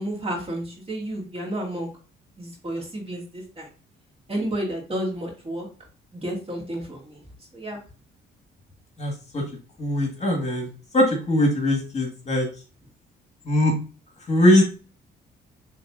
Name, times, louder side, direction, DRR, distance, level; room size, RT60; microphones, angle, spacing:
voice 1, 0.0-1.9 2.4-3.7 4.3-5.7 6.1-7.2 7.5-7.8, right 1 dB, 30° right, -1 dB, 2.1 m, -31 dB
voice 2, 9.0-9.4 9.8-12.5 13.5-13.7 14.3-14.6, left 1 dB, 35° left, 1 dB, 1.7 m, -21 dB
5.9 x 3.3 x 2.6 m, 0.37 s
cardioid pair, 90°, 20 cm